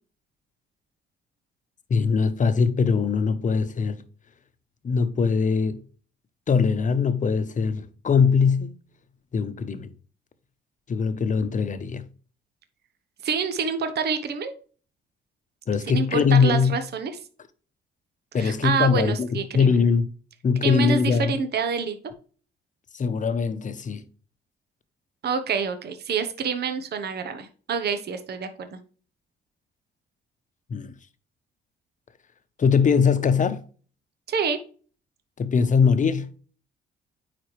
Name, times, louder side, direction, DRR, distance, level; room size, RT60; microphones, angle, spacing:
voice 1, 1.9-4.0 4.8-5.8 6.5-8.7 9.3-9.9 10.9-12.0 15.7-16.7 18.3-20.1 20.4-21.3 22.9-24.1 30.7-30.9 32.6-33.6 35.4-36.3, left 5 dB, 40° left, 0.9 m, -21 dB
voice 2, 13.2-14.5 15.9-17.2 18.4-19.8 20.6-22.0 25.2-28.8 34.3-34.6, right 6 dB, 55° right, 1.0 m, -27 dB
9.2 x 4.2 x 3.2 m
cardioid pair, 90°, 20 cm